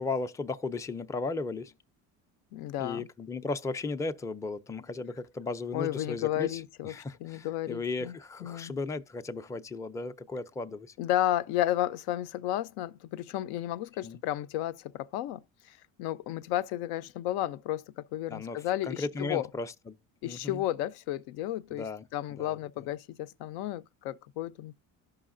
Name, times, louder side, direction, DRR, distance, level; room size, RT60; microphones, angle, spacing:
voice 1, 0.0-1.7 2.8-10.9 14.0-14.2 18.3-20.0 20.2-20.6 21.7-22.1 22.4-22.6, left 3 dB, 10° left, 0.4 m, -36 dB
voice 2, 2.5-3.1 5.7-6.9 7.2-8.7 11.0-19.5 20.2-21.9 22.1-24.8, left 13 dB, 85° left, 0.5 m, -33 dB
14.5 x 5.5 x 2.5 m
cardioid pair, 105°, 38 cm